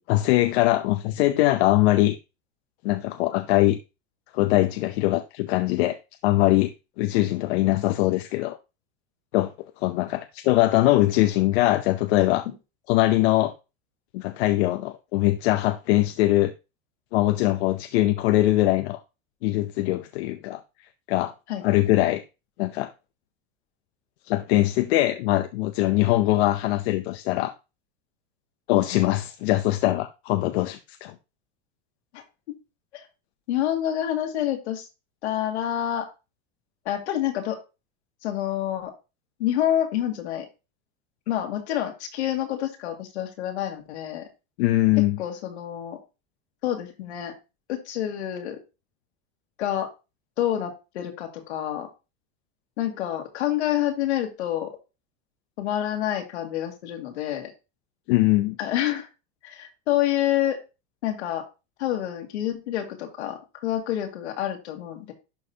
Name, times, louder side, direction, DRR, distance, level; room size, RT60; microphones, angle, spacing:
voice 1, 0.0-2.2 2.8-3.8 4.3-6.7 7.0-8.6 9.3-9.5 9.8-12.5 12.9-13.5 14.1-16.5 17.1-19.0 19.4-20.6 21.1-21.3 21.6-22.2 22.6-22.9 24.3-27.5 28.7-31.1 44.6-45.2 58.1-58.6, left 17 dB, 70° left, 0.7 m, -22 dB
voice 2, 28.7-29.0 32.1-32.2 32.9-33.1 33.5-34.9 35.2-36.1 36.9-37.6 38.2-38.9 39.4-40.5 41.3-44.2 45.2-46.0 46.6-47.3 47.7-48.6 49.6-49.9 50.4-51.9 52.8-54.7 55.6-57.5 58.6-59.1 59.4-60.6 61.0-61.4 61.8-65.1, left 12 dB, 90° left, 2.1 m, -28 dB
11.5 x 4.0 x 2.8 m
supercardioid pair, 115°, 33 cm